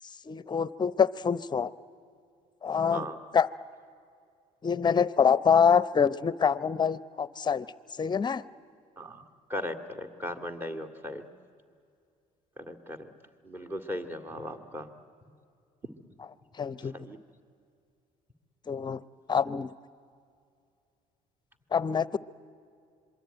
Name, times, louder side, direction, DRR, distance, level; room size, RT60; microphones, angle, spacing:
voice 1, 0.3-1.7 2.6-3.1 3.3-3.5 4.6-7.7 8.0-8.4 16.6-16.9 18.7-19.0 19.3-19.7 21.7-22.2, left 6 dB, 30° left, 18 dB, 0.7 m, -25 dB
voice 2, 9.5-11.3 12.6-13.1 13.4-14.9 15.8-16.0 16.8-17.2, equal, 15° right, 7 dB, 2.2 m, -37 dB
26.5 x 23.0 x 9.1 m, 2.4 s
cardioid pair, 95°, 15 cm